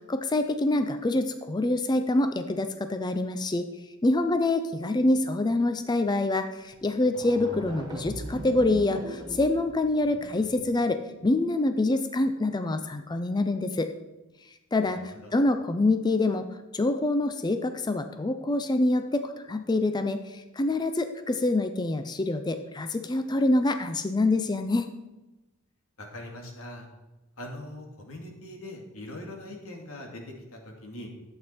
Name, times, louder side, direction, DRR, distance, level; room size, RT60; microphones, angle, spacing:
voice 1, 0.1-3.7 4.0-13.9 14.7-16.5 16.7-24.9, left 2 dB, 20° left, 8 dB, 0.4 m, -26 dB
sound 1, 6.7-6.8 7.0-10.8, right 1 dB, 20° right, 1.1 m, -40 dB
voice 2, 26.0-26.8 27.4-31.1, left 1 dB, 85° left, 1 dB, 2.1 m, -41 dB
11.5 x 7.9 x 4.3 m, 1.1 s
head